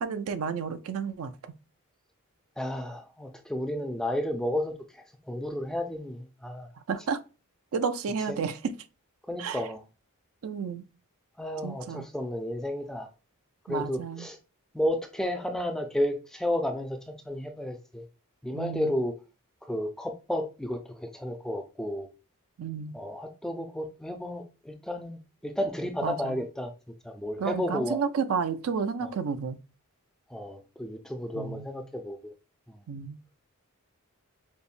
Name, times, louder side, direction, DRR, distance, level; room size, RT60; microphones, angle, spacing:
voice 1, 0.0-1.5 6.8-7.2 7.7-8.7 9.4-9.6 10.4-10.8 11.6-12.1 13.7-14.3 18.5-18.9 22.6-22.9 26.0-26.4 27.4-29.6 31.3-31.7 32.9-33.2, right 6 dB, 70° right, 0.4 m, -31 dB
voice 2, 2.6-6.7 8.3-8.4 9.3-9.8 11.4-13.1 13.7-14.4 14.7-18.1 18.4-19.1 19.6-22.1 22.9-26.7 27.0-28.0 30.3-32.3 32.7-32.8, left 1 dB, ahead, 0.3 m, -32 dB
5.3 x 2.0 x 2.5 m
head